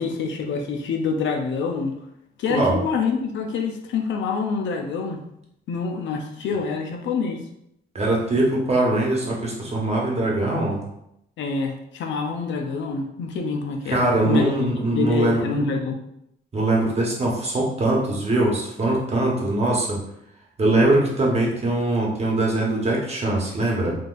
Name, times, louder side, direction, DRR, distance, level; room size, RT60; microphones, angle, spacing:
voice 1, 0.0-1.9 2.4-5.2 5.7-7.4 11.4-16.0, left 5 dB, 70° left, 3 dB, 0.5 m, -26 dB
voice 2, 7.9-10.8 13.9-15.4 16.5-20.0 20.6-23.9, right 2 dB, 30° right, -2 dB, 1.1 m, -22 dB
3.8 x 2.4 x 2.5 m, 0.79 s
cardioid pair, 90°, 20 cm